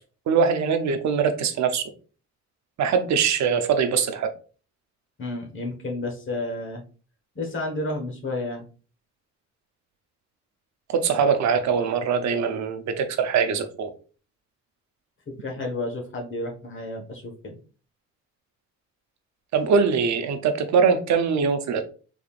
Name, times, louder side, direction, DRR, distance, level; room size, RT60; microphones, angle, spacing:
voice 1, 0.3-1.8 2.8-4.3 10.9-13.9 19.5-21.8, right 6 dB, 65° right, 8 dB, 0.7 m, -22 dB
voice 2, 5.2-6.8 7.3-8.6 15.3-17.6, left 2 dB, 40° left, 2 dB, 1.3 m, -31 dB
3.9 x 3.5 x 2.4 m, 0.37 s
cardioid pair, 90°, 30 cm